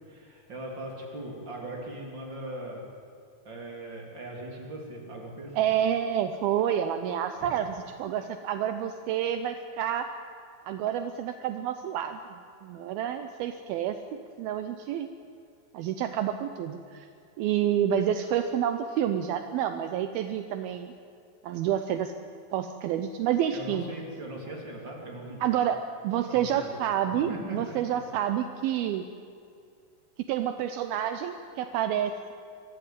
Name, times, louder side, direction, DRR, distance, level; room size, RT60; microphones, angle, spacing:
voice 1, 0.0-2.8 3.4-5.7 23.5-25.4 26.3-26.7 27.1-27.8, right 1 dB, 25° right, -1 dB, 3.4 m, -39 dB
voice 2, 5.5-10.1 10.6-12.2 12.6-14.0 14.4-15.1 15.7-17.1 17.4-20.9 21.4-22.1 22.5-23.9 25.4-29.1 30.3-32.3, right 10 dB, 85° right, 8 dB, 2.1 m, -29 dB
24.5 x 15.0 x 9.3 m, 2.5 s
omnidirectional pair, 5.3 m